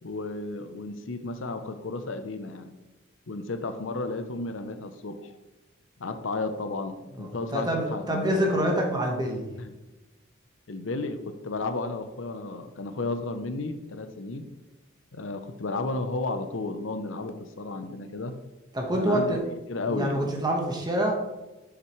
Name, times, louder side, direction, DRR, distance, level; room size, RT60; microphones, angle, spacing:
voice 1, 0.0-2.7 3.3-5.3 6.0-8.8 9.6-9.7 10.7-14.4 15.1-18.3 19.0-19.4 19.7-20.3, left 2 dB, 70° left, 8 dB, 0.7 m, -33 dB
voice 2, 7.2-9.5 18.7-19.4 19.9-21.1, equal, 20° right, 1 dB, 1.3 m, -26 dB
7.3 x 6.7 x 3.1 m, 1.1 s
head